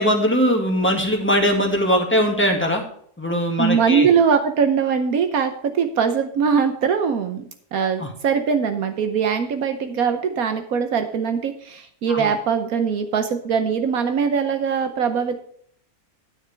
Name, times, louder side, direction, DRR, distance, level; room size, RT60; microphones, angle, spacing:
voice 1, 0.0-2.8 3.2-4.1 8.0-8.1 12.1-12.3, equal, 10° left, 1 dB, 1.9 m, -20 dB
voice 2, 3.6-7.4 7.7-15.3, right 6 dB, 75° right, 8 dB, 1.3 m, -21 dB
10.0 x 9.3 x 3.4 m, 0.64 s
omnidirectional pair, 1.5 m